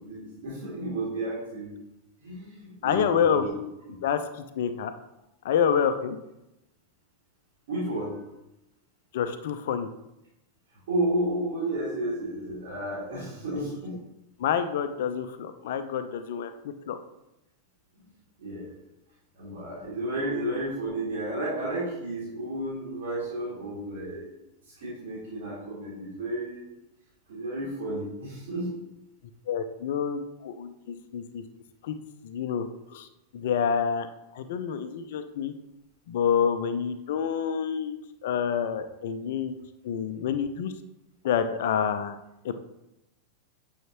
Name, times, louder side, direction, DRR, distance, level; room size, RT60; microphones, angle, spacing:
voice 1, 0.0-1.8 2.2-3.6 3.8-3.9 7.7-8.2 10.9-13.9 18.4-18.8 19.3-24.3 24.8-26.6 27.3-28.7 40.2-40.3, right 1 dB, 55° right, -6 dB, 2.9 m, -32 dB
voice 2, 2.8-3.5 4.0-4.9 5.4-6.2 9.1-9.9 13.5-13.6 14.4-16.5 16.9-17.0 29.5-31.4 31.8-31.9 32.2-32.7 32.9-33.1 33.3-34.1 34.3-35.5 36.1-38.0 38.2-39.5 39.8-40.7 41.2-42.2 42.4-42.5, left 7 dB, 55° left, 9 dB, 0.7 m, -27 dB
9.1 x 6.6 x 3.0 m, 0.89 s
figure-of-eight pair, 90°, 0 cm